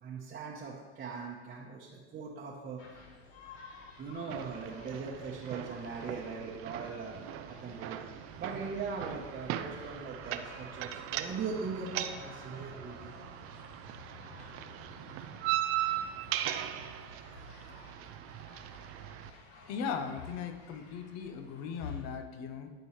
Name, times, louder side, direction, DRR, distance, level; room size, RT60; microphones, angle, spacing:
voice 1, 0.0-2.8 4.0-7.2 7.5-13.1, right 5 dB, 30° right, -4 dB, 1.0 m, -40 dB
sound 1, 2.8-22.1, left 3 dB, 75° left, 1.3 m, -53 dB
sound 2, 4.3-19.3, right 12 dB, 45° right, 0.5 m, -39 dB
voice 2, 19.7-22.7, left 6 dB, 50° left, 8 dB, 0.8 m, -38 dB
11.5 x 4.6 x 3.2 m, 1.4 s
supercardioid pair, 110°, 33 cm